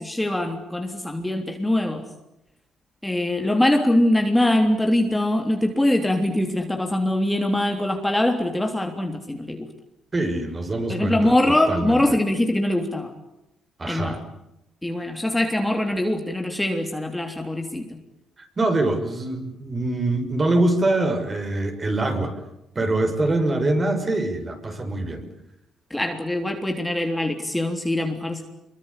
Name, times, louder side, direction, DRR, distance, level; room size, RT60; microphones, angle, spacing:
voice 1, 0.0-2.0 3.0-9.7 10.9-13.1 13.8-14.1 14.8-17.8 25.9-28.4, left 1 dB, 10° left, 4 dB, 3.4 m, -23 dB
voice 2, 10.1-12.2 13.8-14.2 18.6-22.3 22.7-25.3, right 2 dB, 30° right, 6 dB, 6.4 m, -24 dB
26.5 x 23.5 x 8.5 m, 0.86 s
cardioid pair, 90°, 0 cm